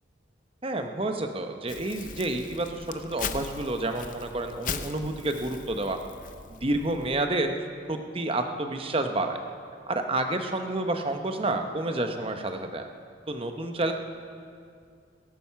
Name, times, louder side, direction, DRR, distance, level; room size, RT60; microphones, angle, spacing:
voice 1, 0.6-6.0 6.5-9.4 9.9-12.9 13.3-13.9, right 2 dB, 30° right, 6 dB, 0.8 m, -29 dB
Crumpling crinkling, 1.7-7.3, left 6 dB, 40° left, 0.6 m, -39 dB
19.0 x 9.1 x 5.8 m, 2.3 s
head